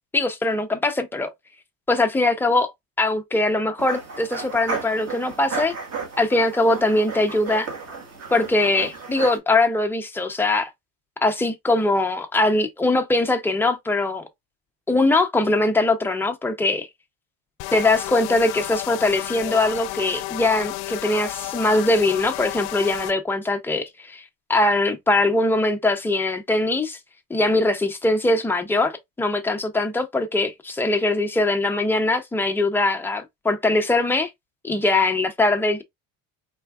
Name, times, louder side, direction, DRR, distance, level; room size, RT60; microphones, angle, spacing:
voice 1, 0.1-1.3 1.9-2.7 3.0-5.7 6.2-7.7 8.3-10.7 11.2-14.3 14.9-16.9 17.7-24.2 24.5-27.0 27.3-34.3 34.6-35.8, left 2 dB, 5° left, 0.3 m, -21 dB
sound 1, 3.8-9.4, right 5 dB, 35° right, 1.5 m, -33 dB
sound 2, 17.6-23.1, left 19 dB, 80° left, 0.5 m, -32 dB
4.3 x 3.3 x 2.2 m
cardioid pair, 140°, 42 cm